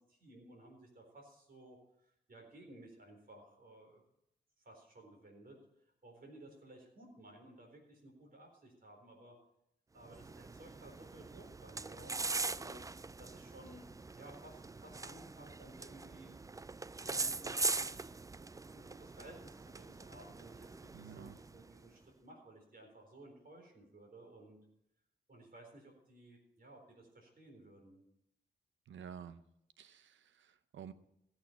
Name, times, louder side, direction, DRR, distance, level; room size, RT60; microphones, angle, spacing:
voice 1, 0.0-4.0 4.6-5.6 6.0-9.4 9.9-12.8 13.2-16.4 17.0-18.1 18.7-24.6 25.3-28.0, right 1 dB, 50° right, 0 dB, 4.1 m, -56 dB
sound 1, 10.0-21.8, right 3 dB, 20° right, 0.3 m, -42 dB
voice 2, 20.9-21.4 28.9-29.4 29.8-30.9, right 8 dB, 90° right, 13 dB, 0.7 m, -51 dB
17.0 x 6.4 x 5.8 m, 0.78 s
cardioid pair, 50°, 19 cm